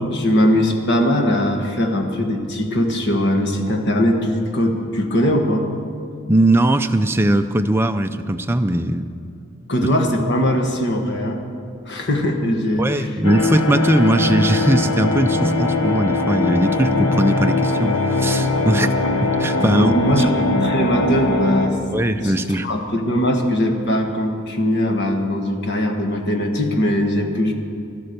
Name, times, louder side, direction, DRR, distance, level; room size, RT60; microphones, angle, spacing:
voice 1, 0.0-5.6 9.7-11.4 11.9-13.1 19.7-20.3 20.6-21.8 22.2-27.5, equal, 50° left, 3 dB, 1.4 m, -20 dB
voice 2, 6.3-9.1 12.8-18.9 19.2-20.3 21.9-22.7, right 1 dB, 10° right, 7 dB, 0.4 m, -19 dB
sound 1, 13.2-21.7, left 2 dB, 75° left, 1.3 m, -20 dB
13.0 x 12.0 x 6.7 m, 2.6 s
head